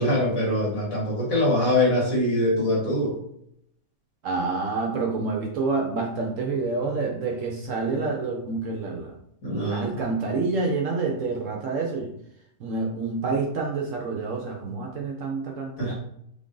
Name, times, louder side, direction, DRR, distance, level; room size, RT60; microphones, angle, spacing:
voice 1, 0.0-3.2 9.4-10.0 15.8-15.9, left 1 dB, 70° left, -5 dB, 2.0 m, -23 dB
voice 2, 4.2-9.1 9.5-12.1 12.6-15.9, right 4 dB, 70° right, 1 dB, 0.9 m, -28 dB
3.6 x 2.5 x 3.7 m, 0.74 s
omnidirectional pair, 1.5 m